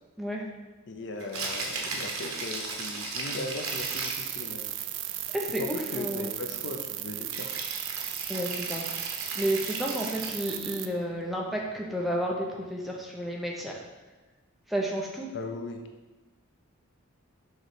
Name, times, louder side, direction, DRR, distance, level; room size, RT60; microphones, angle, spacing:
voice 1, 0.9-4.6 5.6-7.5 15.3-15.8, left 2 dB, 55° left, 4 dB, 0.6 m, -38 dB
Rattle (instrument), 1.2-4.4 7.3-10.5, right 3 dB, 80° right, 1.0 m, -36 dB
sound 1, 3.7-10.9, right 12 dB, 55° right, 0.3 m, -36 dB
voice 2, 5.3-6.3 8.3-8.8 9.3-13.8 14.7-15.3, equal, ahead, -2 dB, 0.6 m, -31 dB
6.5 x 3.2 x 4.8 m, 1.2 s
head